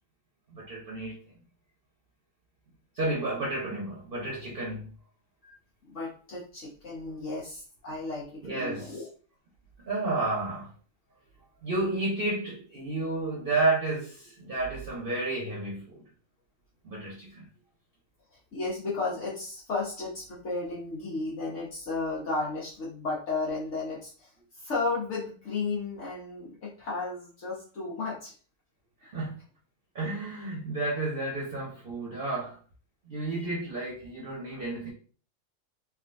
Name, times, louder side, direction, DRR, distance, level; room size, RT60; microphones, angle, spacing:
voice 1, 0.5-1.2 2.9-4.9 7.1-7.2 8.4-9.0 9.8-10.7 11.6-16.0 16.8-17.5 29.0-29.4 29.9-32.6 33.0-34.9, right 2 dB, 50° right, 1.0 m, -31 dB
voice 2, 5.8-9.1 18.5-24.3 24.6-28.3 33.3-33.4 34.5-34.6, left 3 dB, 65° left, 1.3 m, -34 dB
3.6 x 2.5 x 2.5 m
omnidirectional pair, 1.3 m